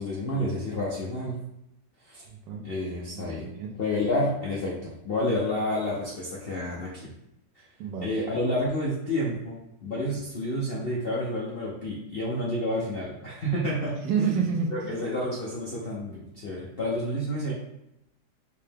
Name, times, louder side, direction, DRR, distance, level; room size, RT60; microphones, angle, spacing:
voice 1, 0.0-1.4 2.1-2.2 2.6-3.5 3.7-7.1 7.5-7.7 8.0-14.0 14.7-17.5, left 1 dB, 60° left, -6 dB, 0.6 m, -29 dB
voice 2, 2.2-2.6 3.1-3.7 7.8-8.1 14.0-15.0, right 6 dB, 75° right, 1 dB, 1.3 m, -29 dB
4.8 x 2.2 x 3.3 m, 0.84 s
omnidirectional pair, 1.9 m